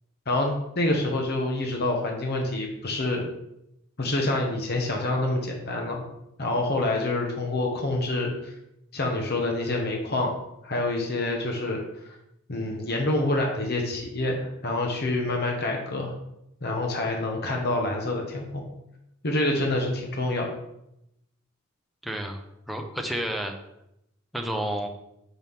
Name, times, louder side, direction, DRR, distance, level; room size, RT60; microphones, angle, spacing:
voice 1, 0.3-3.2 4.0-6.0 6.4-8.5 8.9-10.3 10.6-11.8 12.5-16.1 16.6-18.7 19.2-20.5, left 2 dB, 50° left, 1 dB, 1.0 m, -27 dB
voice 2, 22.0-22.4 22.7-23.5 24.3-24.9, right 1 dB, ahead, 2 dB, 0.7 m, -30 dB
6.2 x 5.9 x 3.6 m, 0.83 s
head